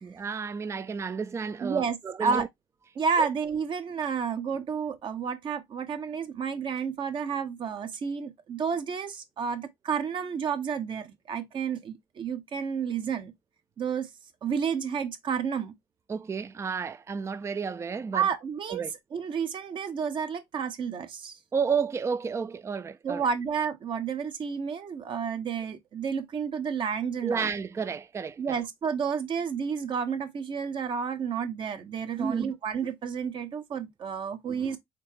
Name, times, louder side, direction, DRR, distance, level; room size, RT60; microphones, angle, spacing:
voice 1, 0.0-2.5 3.2-3.3 16.1-18.3 18.7-18.9 21.5-23.3 27.2-28.6 32.2-32.5, right 5 dB, 30° right, 0.4 m, -31 dB
voice 2, 1.6-2.5 3.0-13.3 13.8-14.1 14.4-15.7 18.1-21.4 23.0-27.5 28.4-34.8, right 6 dB, 55° right, 1.0 m, -31 dB
4.3 x 3.5 x 3.0 m
supercardioid pair, 65°, 10 cm